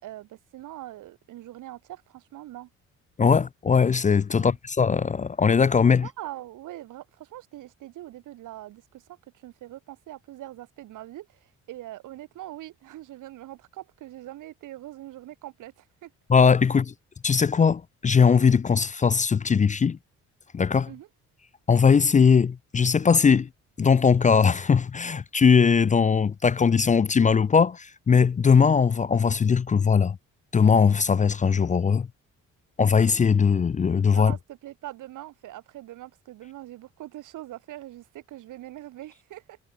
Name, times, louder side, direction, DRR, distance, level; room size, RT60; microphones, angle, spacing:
voice 1, 0.0-2.7 4.3-4.6 6.0-16.1 20.9-21.1 34.1-39.6, right 14 dB, 85° right, 4.3 m, -42 dB
voice 2, 3.2-6.1 16.3-16.9 17.2-20.0 20.5-20.9 21.7-23.5 23.8-30.2 30.5-32.1 32.8-34.3, left 6 dB, 25° left, 0.5 m, -20 dB
cardioid pair, 90°, 30 cm